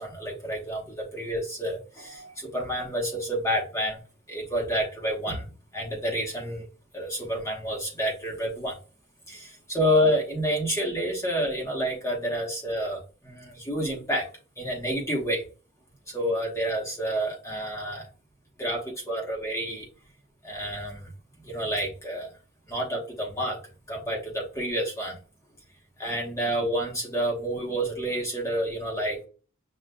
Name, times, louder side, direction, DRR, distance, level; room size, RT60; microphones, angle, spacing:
voice 1, 0.0-4.0 4.3-5.5 5.7-6.6 6.9-8.8 9.3-14.3 14.6-15.4 16.1-18.1 18.6-19.9 20.4-21.1 21.4-22.3 22.7-23.6 23.9-25.1 26.0-29.3, equal, 15° left, -1 dB, 1.0 m, -29 dB
6.7 x 2.4 x 2.2 m, 0.35 s
head